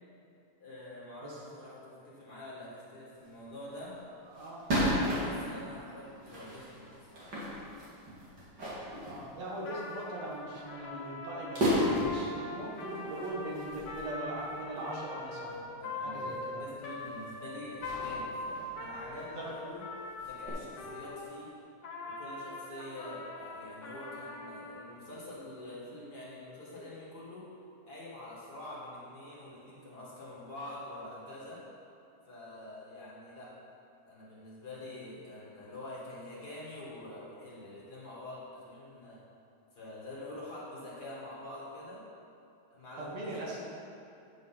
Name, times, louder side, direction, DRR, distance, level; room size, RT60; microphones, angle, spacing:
voice 1, 0.6-4.0 5.2-7.3 15.8-19.8 20.2-21.5 22.0-27.5 27.8-31.6 32.3-33.5 34.0-39.2 39.7-42.0 42.7-43.5, left 1 dB, 35° left, -7 dB, 2.2 m, -46 dB
sound 1, 3.2-3.3 3.7-3.8 4.3-5.7 6.2-9.9 10.3-10.6 10.9-11.0 11.5-12.3 12.7-14.9 15.5-15.6 16.3-16.5 16.8-17.3 17.8-19.3 19.6-19.7 20.0-20.5, equal, 40° right, 2.8 m, -34 dB
voice 2, 9.0-15.6 16.0-16.6 19.3-19.5 43.0-43.6, right 1 dB, 65° right, -4 dB, 2.8 m, -40 dB
Trumpet, 9.6-21.3 21.8-24.8, left 2 dB, 60° left, 2.2 m, -42 dB
9.0 x 6.9 x 5.8 m, 2.7 s
omnidirectional pair, 3.3 m